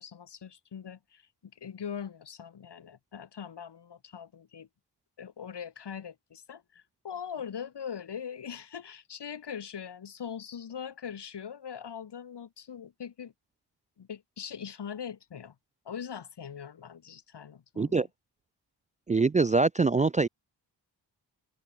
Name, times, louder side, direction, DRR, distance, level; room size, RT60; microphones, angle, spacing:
voice 1, 0.0-4.7 5.2-13.3 14.0-15.6 15.9-17.9, left 7 dB, 70° left, 5.4 m, -41 dB
voice 2, 17.8-18.1 19.1-20.3, right 4 dB, 20° right, 0.4 m, -24 dB
cardioid pair, 65°, 43 cm